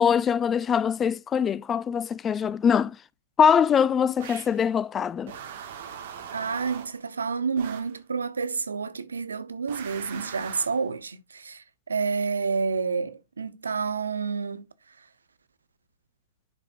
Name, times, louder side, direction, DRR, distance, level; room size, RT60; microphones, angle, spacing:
voice 1, 0.0-2.9 3.4-5.3, left 7 dB, 20° left, 0.3 m, -22 dB
sound 1, 4.2-4.6 5.3-7.0 7.6-8.0 9.7-10.8, right 8 dB, 55° right, 1.7 m, -41 dB
voice 2, 6.3-14.6, right 5 dB, 85° right, 0.9 m, -29 dB
11.0 x 5.0 x 2.5 m
hypercardioid pair, 115°, 0 cm